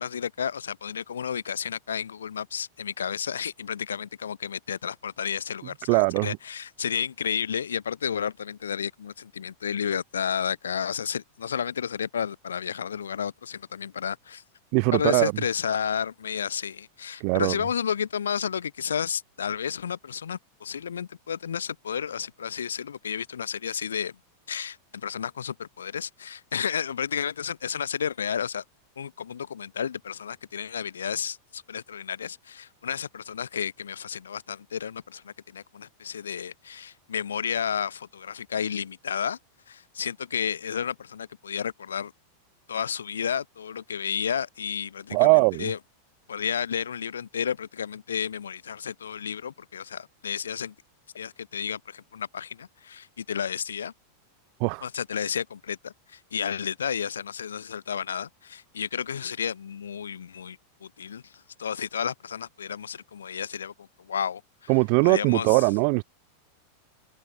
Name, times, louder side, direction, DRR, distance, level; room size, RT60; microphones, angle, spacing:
voice 1, 0.0-14.4 14.9-24.1 24.5-28.6 29.0-39.4 39.7-42.1 42.7-45.8 46.3-50.7 51.1-53.9 54.8-64.7 65.0-65.6, left 7 dB, 70° left, 0.8 m, -32 dB
voice 2, 5.9-6.4 14.7-15.3 17.2-17.6 45.1-45.7 54.6-54.9 64.7-66.0, right 40 dB or more, 45° right, 0.6 m, -21 dB
figure-of-eight pair, 90°, 0 cm